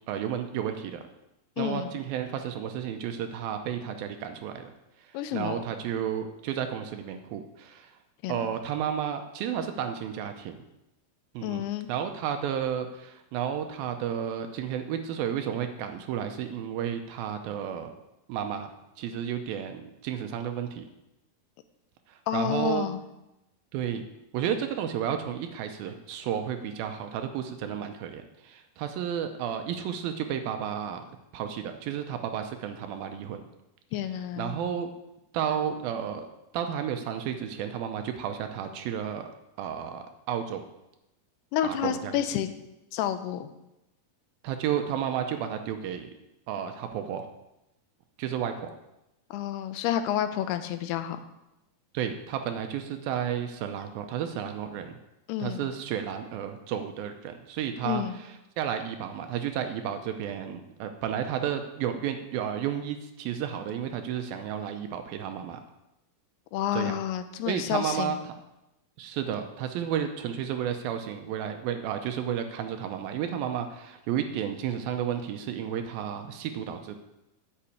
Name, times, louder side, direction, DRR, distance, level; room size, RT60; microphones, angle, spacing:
voice 1, 0.1-1.0 1.6-4.7 5.0-7.9 8.3-10.6 11.3-17.9 18.3-18.7 19.0-20.9 22.1-22.9 23.7-24.0 24.3-31.0 31.3-33.4 34.4-34.9 35.3-36.2 36.5-39.3 39.6-40.6 41.6-42.2 44.4-46.1 46.5-47.3 48.2-48.7 51.9-54.9 55.4-65.6 66.7-67.0 67.5-68.4 69.0-77.0, right 9 dB, 80° right, 7 dB, 2.4 m, -32 dB
voice 2, 1.6-1.9 5.1-5.6 8.2-8.5 11.4-11.9 22.3-23.0 33.9-34.6 41.5-42.5 42.9-43.5 49.3-51.2 55.3-55.7 57.8-58.2 66.5-68.2, left 10 dB, 90° left, 10 dB, 2.7 m, -30 dB
8.6 x 6.1 x 8.2 m, 0.92 s
omnidirectional pair, 4.5 m